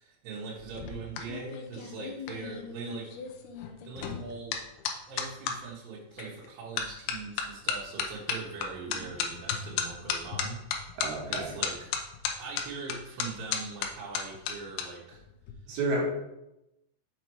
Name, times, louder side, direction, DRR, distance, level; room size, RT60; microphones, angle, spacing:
voice 1, 0.0-3.2 3.9-4.6 5.1-10.7 11.3-12.1 12.4-15.2, right 4 dB, 85° right, -6 dB, 3.7 m, -41 dB
sound 1, 0.6-5.6 6.2-6.5 6.8-14.8 15.1-15.5, left 7 dB, 75° left, 2.4 m, -34 dB
voice 2, 11.0-11.5 15.7-16.0, right 2 dB, 60° right, -3 dB, 3.5 m, -31 dB
7.5 x 5.2 x 4.6 m, 0.90 s
omnidirectional pair, 5.3 m